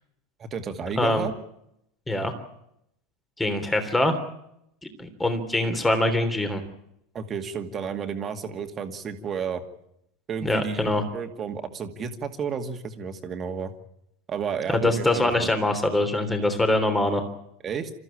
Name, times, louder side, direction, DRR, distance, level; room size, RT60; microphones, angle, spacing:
voice 1, 0.4-1.3 7.1-9.6 10.3-10.8 11.1-13.7 14.3-15.5 17.6-17.9, right 6 dB, 30° right, 6 dB, 2.2 m, -32 dB
voice 2, 1.0-1.3 2.1-2.3 3.4-4.2 5.0-6.6 10.4-11.0 14.7-17.2, left 1 dB, 10° left, 8 dB, 3.3 m, -23 dB
28.0 x 14.5 x 8.7 m, 0.79 s
figure-of-eight pair, 80°, 0 cm